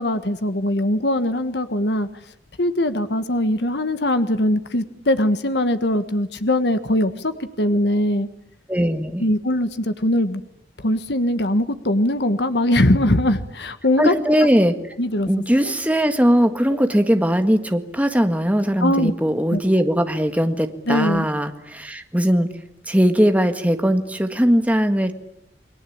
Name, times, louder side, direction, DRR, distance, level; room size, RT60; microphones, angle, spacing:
voice 1, 0.0-2.1 2.6-8.3 9.2-10.4 10.8-14.1 15.0-15.3 15.6-15.7 18.8-19.1 19.5-19.6 20.9-21.2, left 1 dB, 65° left, 10 dB, 1.5 m, -21 dB
voice 2, 8.7-9.2 14.0-14.9 15.3-22.5 22.9-25.2, equal, 10° right, 7 dB, 1.7 m, -19 dB
29.5 x 22.0 x 8.7 m, 0.75 s
head